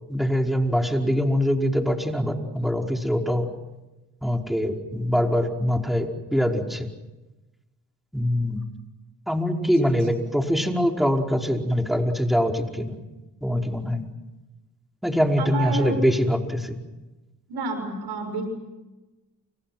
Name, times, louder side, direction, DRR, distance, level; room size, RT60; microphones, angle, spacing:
voice 1, 0.1-3.5 4.2-6.9 8.1-8.6 9.3-13.0 13.4-14.1 15.0-16.8, equal, ahead, 2 dB, 5.0 m, -23 dB
voice 2, 15.4-16.1 17.5-18.4, right 3 dB, 80° right, 7 dB, 6.7 m, -29 dB
29.0 x 28.5 x 6.1 m, 1.1 s
supercardioid pair, 40°, 39 cm